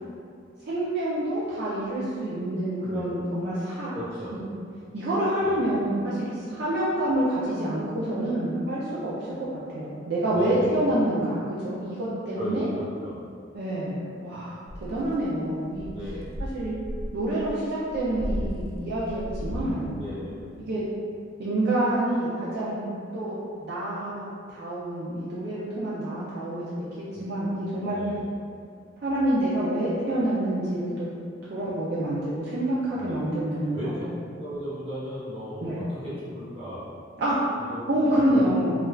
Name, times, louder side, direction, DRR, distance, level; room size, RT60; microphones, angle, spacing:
voice 1, 0.7-3.9 4.3-4.4 4.9-9.5 9.7-12.7 13.5-15.8 16.5-16.8 17.1-19.9 20.6-20.8 21.4-23.4 23.6-28.0 29.0-31.1 31.5-34.0 35.6-35.8 37.2-37.4 37.9-38.7, right 1 dB, 55° right, -9 dB, 0.4 m, -27 dB
voice 2, 2.7-3.1 3.9-4.4 5.4-5.6 10.3-10.9 12.3-13.2 15.9-16.4 19.9-20.6 27.1-27.2 27.9-28.3 32.9-33.3 33.7-33.9 34.3-36.8 37.6-37.8 38.1-38.5, equal, 30° right, -11 dB, 1.0 m, -36 dB
sound 1, 14.7-15.2 15.7-19.8, equal, 55° left, 0.4 m, -35 dB
3.1 x 2.4 x 2.3 m, 2.3 s
head